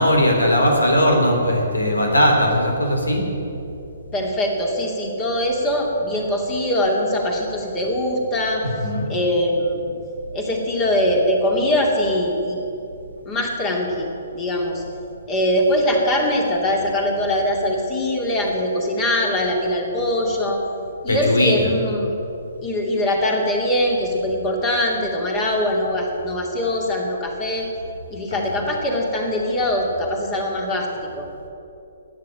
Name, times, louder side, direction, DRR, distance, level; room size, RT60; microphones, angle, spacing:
voice 1, 0.0-3.2 8.6-9.1 21.1-21.7 28.3-28.4, equal, 80° left, 1 dB, 3.3 m, -18 dB
voice 2, 4.1-8.6 9.1-9.9 10.3-12.6 13.3-14.1 14.3-14.8 15.3-20.6 21.0-22.1 22.6-27.7 28.1-30.9 31.1-31.3, left 1 dB, 25° left, 0 dB, 2.5 m, -22 dB
13.0 x 9.3 x 9.0 m, 2.8 s
figure-of-eight pair, 125°, 0 cm